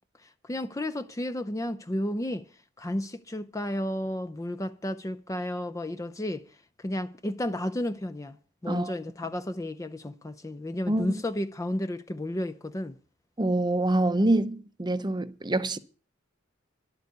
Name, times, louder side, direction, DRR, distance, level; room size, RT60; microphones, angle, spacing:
voice 1, 0.2-2.5 2.8-6.4 6.8-8.4 8.6-13.0, left 1 dB, 15° left, 0.5 m, -32 dB
voice 2, 10.9-11.2 13.4-15.8, right 2 dB, 20° right, 0.7 m, -26 dB
12.0 x 8.0 x 8.3 m
head